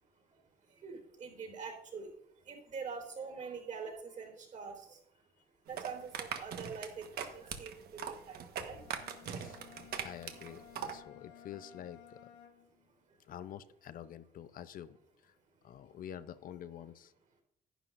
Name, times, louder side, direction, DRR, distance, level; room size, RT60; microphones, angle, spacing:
voice 1, 0.1-5.2 5.6-9.6 11.2-11.5 12.9-13.2, right 5 dB, 45° right, 3 dB, 3.9 m, -46 dB
sound 1, 5.7-11.0, right 8 dB, 70° right, 1.3 m, -41 dB
Bowed string instrument, 8.7-12.9, left 11 dB, 75° left, 2.2 m, -57 dB
voice 2, 9.2-9.6 10.0-12.3 13.2-15.4 15.6-17.1, left 10 dB, 55° left, 13 dB, 0.6 m, -48 dB
11.0 x 10.5 x 2.6 m, 0.73 s
cardioid pair, 110°, 17 cm